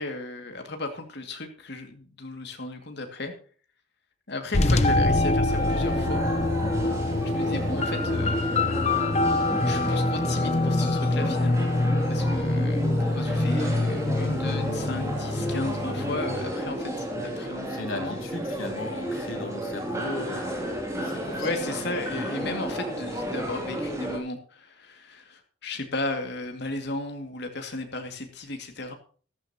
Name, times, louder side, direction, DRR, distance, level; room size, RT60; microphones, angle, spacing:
voice 1, 0.0-3.3 4.3-6.2 7.2-9.0 9.6-11.7 12.1-18.2 21.4-28.9, left 2 dB, 55° left, 4 dB, 2.3 m, -35 dB
sound 1, 4.5-16.5, left 2 dB, 35° left, 0.8 m, -25 dB
sound 2, 5.5-24.2, equal, 15° right, 2.7 m, -33 dB
voice 2, 17.7-21.5, left 2 dB, 90° left, 0 dB, 3.2 m, -37 dB
14.0 x 13.5 x 2.9 m, 0.41 s
head